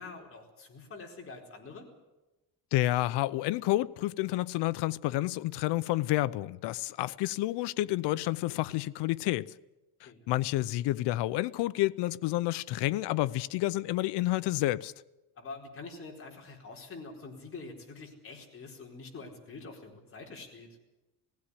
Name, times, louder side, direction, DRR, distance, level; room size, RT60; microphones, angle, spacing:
voice 1, 0.0-1.9 10.0-10.3 15.4-20.7, left 3 dB, 35° left, 4.4 m, -46 dB
voice 2, 2.7-9.5 10.0-14.9, left 16 dB, 90° left, 0.7 m, -29 dB
19.0 x 16.0 x 9.9 m
cardioid pair, 140°, 40 cm